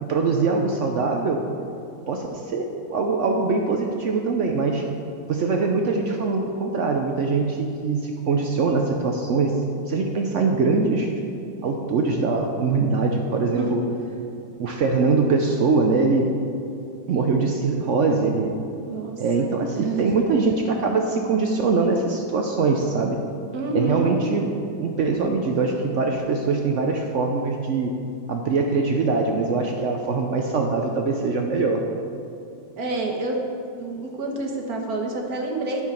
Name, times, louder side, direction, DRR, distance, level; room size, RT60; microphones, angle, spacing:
voice 1, 0.0-1.5 2.1-4.9 5.3-11.1 11.6-13.8 14.6-16.3 17.1-18.5 19.2-23.2 23.7-24.5 24.8-27.9 28.3-31.8, right 4 dB, 85° right, 3 dB, 0.6 m, -22 dB
voice 2, 18.9-19.5 19.8-20.2 23.5-24.1 32.8-33.4 33.8-35.9, right 2 dB, 55° right, 1 dB, 1.6 m, -28 dB
12.5 x 4.8 x 5.7 m, 2.7 s
omnidirectional pair, 2.1 m